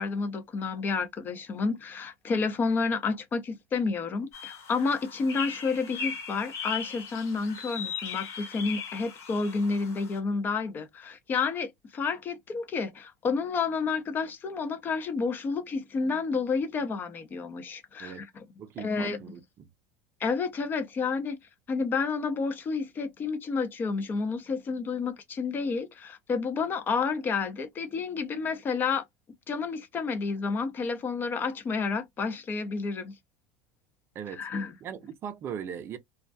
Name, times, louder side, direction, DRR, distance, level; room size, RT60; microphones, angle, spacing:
voice 1, 0.0-18.3 18.8-19.2 20.2-21.4 21.7-29.0 29.5-33.1 34.4-34.7, left 4 dB, 30° left, 0.6 m, -30 dB
sound 1, 4.3-10.2, left 6 dB, 55° left, 1.0 m, -38 dB
voice 2, 18.6-19.7 34.1-34.5 34.8-36.0, right 8 dB, 40° right, 0.5 m, -39 dB
2.3 x 2.1 x 2.6 m
supercardioid pair, 110°, 6 cm